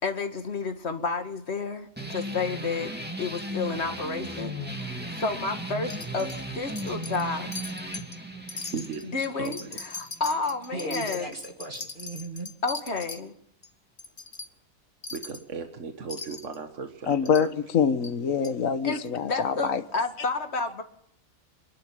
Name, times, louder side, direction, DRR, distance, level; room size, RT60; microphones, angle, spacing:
voice 1, 0.0-2.9 3.2-7.5 9.1-11.3 12.6-13.3 18.8-20.8, left 4 dB, 50° left, 2.3 m, -31 dB
sound 1, 2.0-11.0, right 1 dB, 5° right, 2.4 m, -36 dB
Wind chime, 5.9-6.4 6.8-7.3 7.5-8.2 8.5-13.2 13.6-13.7 14.0-14.5 15.0-15.4 16.1-16.6 17.3-17.5 18.0-18.1 18.4-18.5, left 3 dB, 35° left, 1.6 m, -39 dB
voice 2, 8.7-9.7 15.1-17.5, right 5 dB, 65° right, 1.7 m, -37 dB
voice 3, 10.7-12.5, right 2 dB, 40° right, 2.3 m, -37 dB
voice 4, 17.1-17.5 17.7-19.8, left 7 dB, 75° left, 1.6 m, -25 dB
26.5 x 11.5 x 9.2 m
omnidirectional pair, 1.4 m